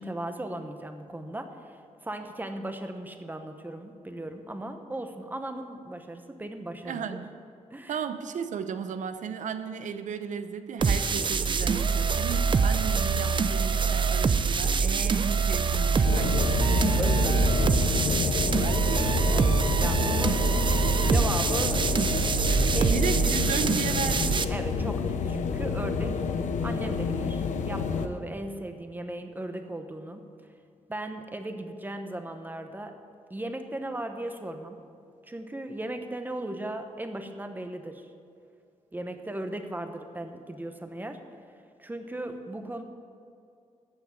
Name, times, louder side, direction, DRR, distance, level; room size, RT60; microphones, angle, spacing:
voice 1, 0.0-7.2 7.7-8.0 16.9-17.5 19.2-20.5 21.1-22.0 22.7-23.2 24.5-26.3 26.6-30.3 30.9-33.0 33.3-34.8 35.2-38.1 38.9-41.3 41.8-42.8, right 1 dB, 15° right, 6 dB, 1.0 m, -37 dB
voice 2, 6.8-7.3 7.9-16.4 18.6-19.4 22.5-22.6 22.9-24.4, right 7 dB, 80° right, 10 dB, 0.8 m, -35 dB
sound 1, 10.8-24.4, right 5 dB, 40° right, 0.5 m, -25 dB
sound 2, 16.0-28.1, left 5 dB, 75° left, 0.8 m, -28 dB
14.0 x 6.0 x 8.1 m, 2.5 s
cardioid pair, 100°, 13 cm